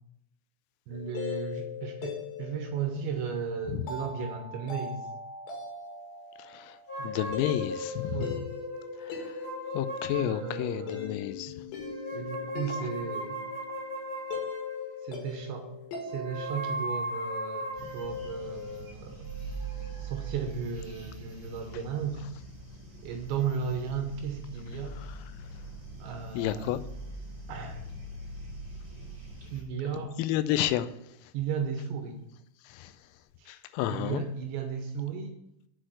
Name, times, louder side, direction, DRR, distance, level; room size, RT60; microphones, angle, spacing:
sound 1, 0.9-16.8, left 5 dB, 65° left, 4.1 m, -41 dB
voice 1, 0.9-5.0 7.0-7.2 8.1-8.4 10.1-11.2 12.1-13.4 15.0-15.7 16.0-19.2 20.0-22.2 23.0-25.0 26.0-26.7 27.5-27.8 29.5-30.2 31.3-32.2 33.4-33.6 33.9-35.3, right 6 dB, 75° right, 2.9 m, -35 dB
voice 2, 6.4-6.8 7.0-8.2 9.0-9.4 9.7-11.5 25.0-25.1 26.3-26.8 30.2-30.9 31.2-31.3 32.6-32.9 33.5-34.2, left 12 dB, 85° left, 3.2 m, -31 dB
sound 2, 6.9-11.1 11.8-15.2 16.1-20.4, left 1 dB, 45° left, 5.0 m, -38 dB
sound 3, 17.7-29.6, right 2 dB, 30° right, 1.5 m, -42 dB
8.0 x 6.3 x 7.7 m
omnidirectional pair, 5.9 m